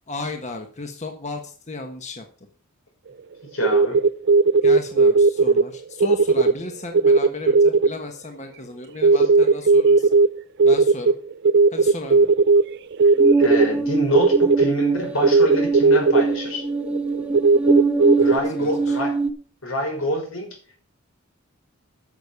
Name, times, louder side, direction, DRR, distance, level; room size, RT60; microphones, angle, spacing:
voice 1, 0.1-2.2 4.6-10.1 10.6-11.1 11.7-12.3 18.2-19.0, left 3 dB, 35° left, 4 dB, 1.3 m, -34 dB
voice 2, 3.5-4.0 13.4-16.6 18.2-19.1 19.6-20.6, equal, 85° left, 1 dB, 6.1 m, -26 dB
sound 1, 3.6-5.6 6.0-6.5 6.9-7.9 9.0-10.3 10.6-12.6 12.9-13.7 14.1-14.7 15.2-16.2 16.8-18.4, right 4 dB, 55° right, 0.5 m, -16 dB
sound 2, 13.2-19.3, right 3 dB, 5° right, 1.0 m, -23 dB
11.5 x 6.8 x 7.1 m, 0.41 s
head